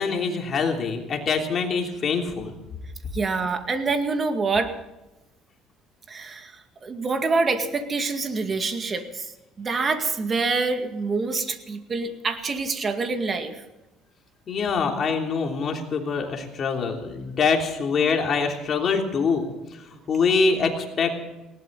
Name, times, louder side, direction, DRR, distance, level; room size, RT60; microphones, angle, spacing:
voice 1, 0.0-2.5 14.5-19.4 19.7-21.1, left 5 dB, 40° left, 2 dB, 3.1 m, -24 dB
voice 2, 3.1-4.7 6.1-6.5 6.8-9.3 9.6-13.5, right 4 dB, 30° right, 6 dB, 2.1 m, -26 dB
19.5 x 18.0 x 4.0 m, 1.0 s
cardioid pair, 125°, 0 cm